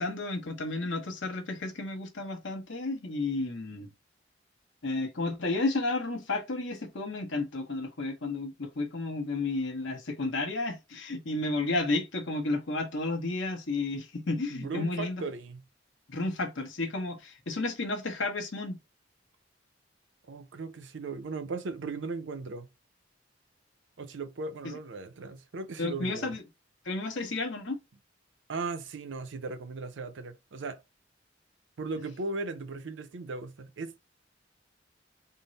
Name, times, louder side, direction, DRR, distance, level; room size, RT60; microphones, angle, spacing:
voice 1, 0.0-3.9 4.8-15.2 16.1-18.8 24.6-24.7 25.8-26.4 26.8-27.8, left 2 dB, 75° left, 0.9 m, -32 dB
voice 2, 14.5-15.6 20.3-22.7 24.0-26.4 28.5-30.8 31.8-34.0, right 3 dB, 75° right, 0.5 m, -37 dB
3.7 x 2.0 x 3.9 m
head